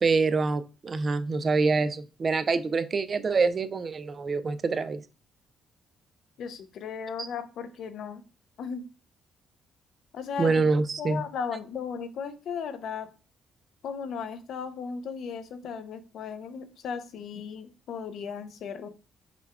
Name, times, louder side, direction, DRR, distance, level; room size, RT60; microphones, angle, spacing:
voice 1, 0.0-5.0 7.2-7.3 10.4-11.2, right 4 dB, 40° right, 12 dB, 0.5 m, -26 dB
voice 2, 6.4-8.2 8.6-8.8 10.1-10.6 11.0-13.1 13.8-18.9, left 6 dB, 70° left, 11 dB, 0.6 m, -36 dB
5.9 x 2.3 x 3.4 m, 0.34 s
cardioid pair, 90°, 0 cm